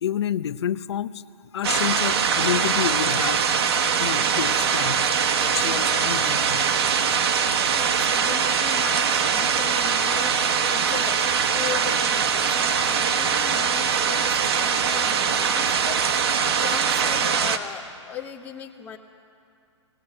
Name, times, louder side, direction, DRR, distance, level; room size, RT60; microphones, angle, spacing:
voice 1, 0.0-1.2 1.5-3.4 4.0-5.1 5.4-6.6 7.1-7.2, left 9 dB, 60° left, 14 dB, 0.7 m, -29 dB
sound 1, 1.6-17.6, right 7 dB, 55° right, 1.2 m, -22 dB
voice 2, 7.7-19.0, left 8 dB, 10° left, 1 dB, 1.0 m, -38 dB
18.0 x 17.0 x 8.8 m, 2.5 s
hypercardioid pair, 150°, 16 cm